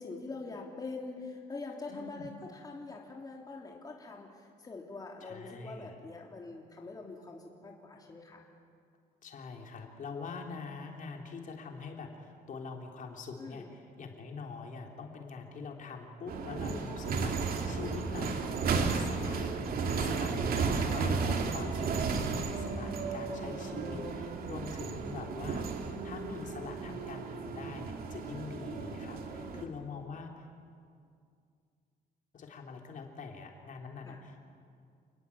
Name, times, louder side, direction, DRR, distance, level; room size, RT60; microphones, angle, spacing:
voice 1, 0.0-8.4 13.4-13.7 20.6-20.9 28.3-28.7 29.2-29.7 34.0-34.2, left 3 dB, 20° left, 0 dB, 3.2 m, -44 dB
voice 2, 1.9-2.3 5.2-6.0 9.2-18.5 18.7-19.5 19.9-25.7 26.0-30.5 32.3-34.4, left 4 dB, 50° left, 2 dB, 3.6 m, -44 dB
sound 1, 16.3-29.7, right 4 dB, 60° right, 2.7 m, -34 dB
29.0 x 20.5 x 8.6 m, 2.3 s
cardioid pair, 130°, 17 cm